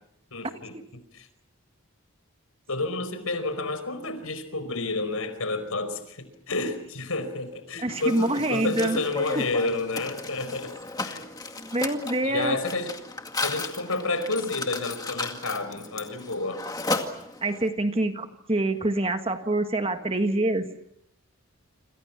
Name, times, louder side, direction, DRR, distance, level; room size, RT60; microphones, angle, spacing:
voice 1, 0.3-0.7 1.1-1.3 2.7-10.8 11.0-11.2 12.2-12.9 13.4-16.6, left 3 dB, 75° left, 10 dB, 4.8 m, -30 dB
voice 2, 7.8-9.0 9.4-9.5 11.6-12.6 17.4-20.7, right 2 dB, 25° right, 7 dB, 1.6 m, -26 dB
Mechanisms, 7.9-17.7, left 3 dB, 15° left, 2.1 m, -35 dB
28.0 x 27.5 x 6.0 m, 0.73 s
head